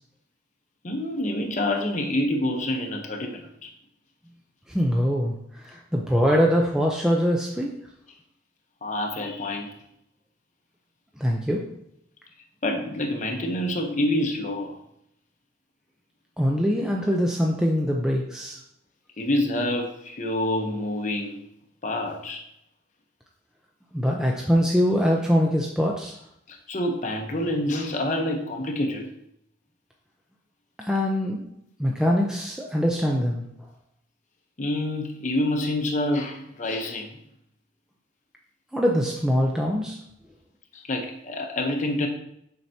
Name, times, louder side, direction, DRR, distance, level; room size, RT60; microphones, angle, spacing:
voice 1, 0.8-3.7 8.8-9.7 12.6-14.7 19.2-21.4 21.8-22.4 26.5-29.1 34.6-37.1 40.7-42.1, left 1 dB, 40° left, 2 dB, 0.8 m, -27 dB
voice 2, 4.7-7.7 11.2-11.6 16.4-18.6 23.9-26.1 30.8-31.5 31.8-33.4 38.7-40.0, equal, 5° right, -2 dB, 0.5 m, -23 dB
7.6 x 5.6 x 2.8 m, 0.76 s
head